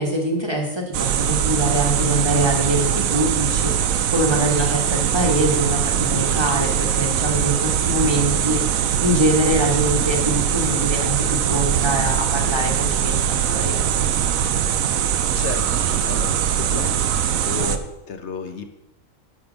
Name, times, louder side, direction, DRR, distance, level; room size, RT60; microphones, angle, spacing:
voice 1, 0.0-14.1, right 1 dB, 20° right, 1 dB, 1.5 m, -24 dB
sound 1, 0.9-17.8, right 9 dB, 80° right, 1.1 m, -21 dB
voice 2, 15.3-17.0 17.5-18.7, left 5 dB, 60° left, 7 dB, 1.1 m, -32 dB
9.5 x 7.9 x 5.1 m, 0.96 s
omnidirectional pair, 1.4 m